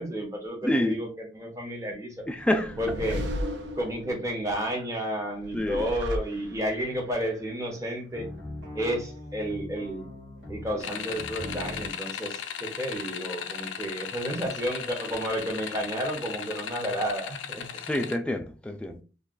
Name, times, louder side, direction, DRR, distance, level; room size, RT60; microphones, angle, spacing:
voice 1, 0.0-2.2 2.8-3.4 3.7-8.3 8.7-10.1 10.5-17.7, equal, 15° right, 0.8 m, -31 dB
voice 2, 0.6-1.0 2.3-2.8 5.5-5.9 17.8-19.0, left 1 dB, 5° left, 0.3 m, -27 dB
sound 1, 2.4-4.4 5.4-6.9, equal, 65° right, 0.5 m, -34 dB
sound 2, 8.1-11.9, left 1 dB, 90° right, 1.5 m, -40 dB
sound 3, 10.8-18.2, left 8 dB, 80° left, 0.4 m, -37 dB
2.4 x 2.4 x 3.7 m
head